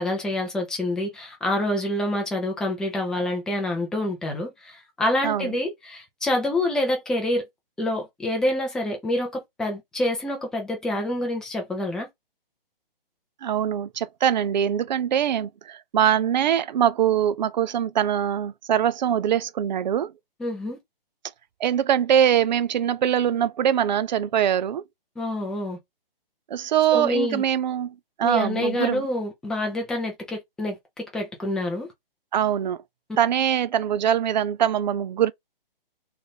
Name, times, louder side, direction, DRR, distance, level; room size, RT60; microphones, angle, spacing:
voice 1, 0.0-7.5 7.8-12.1 20.4-20.8 25.2-25.8 26.9-27.4 28.2-31.9, left 1 dB, ahead, 0.5 m, -27 dB
voice 2, 13.4-20.1 21.6-24.8 26.5-29.0 32.3-32.8 33.2-35.3, right 9 dB, 50° right, 0.5 m, -23 dB
3.3 x 2.5 x 4.0 m
hypercardioid pair, 145°, 29 cm